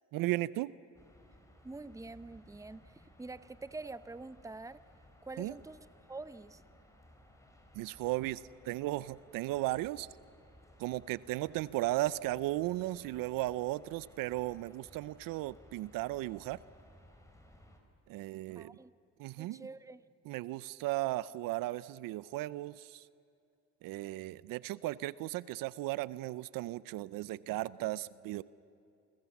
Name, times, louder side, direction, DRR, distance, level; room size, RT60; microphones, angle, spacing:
voice 1, 0.1-0.7 5.4-5.5 7.7-10.1 10.8-16.6 18.1-18.8 19.2-19.7 20.3-23.0 23.8-28.4, right 17 dB, 80° right, 19 dB, 0.7 m, -36 dB
sound 1, 0.9-17.8, left 1 dB, 10° left, 4.6 m, -60 dB
voice 2, 1.6-4.8 5.2-5.8 6.1-6.6 18.5-18.9 19.4-20.0, right 3 dB, 10° right, 15 dB, 0.9 m, -46 dB
29.0 x 25.0 x 7.2 m, 2.6 s
cardioid pair, 80°, 33 cm